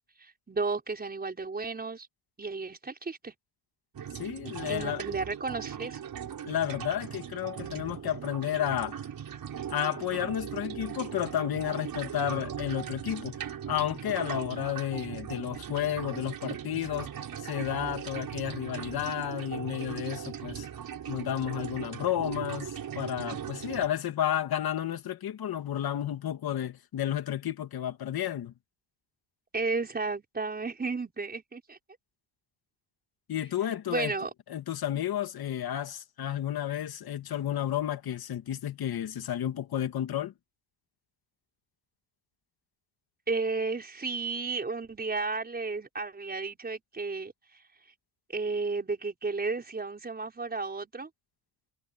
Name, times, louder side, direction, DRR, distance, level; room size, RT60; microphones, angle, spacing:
voice 1, 0.2-2.1 2.4-3.3 4.7-6.0 10.2-10.3 29.5-31.8 33.9-34.3 43.3-47.3 48.3-51.1, right 4 dB, 20° right, 5.5 m, -33 dB
sound 1, 3.9-23.9, right 9 dB, 45° right, 5.4 m, -39 dB
voice 2, 4.1-5.0 6.4-9.0 9.7-17.1 17.4-20.7 21.1-28.5 33.3-34.1 34.5-40.3, left 11 dB, 50° left, 2.5 m, -32 dB
cardioid pair, 150°, 48 cm